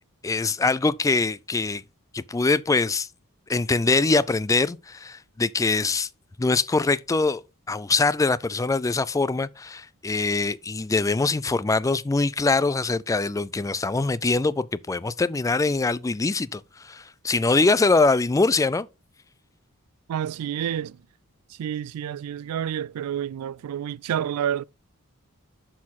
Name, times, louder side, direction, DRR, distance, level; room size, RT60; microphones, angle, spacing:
voice 1, 0.2-1.8 2.1-3.1 3.5-6.1 6.4-7.4 7.7-18.9, left 3 dB, 15° left, 0.3 m, -23 dB
voice 2, 20.1-21.0 21.5-24.6, right 9 dB, 85° right, 0.3 m, -29 dB
11.5 x 4.3 x 4.2 m
head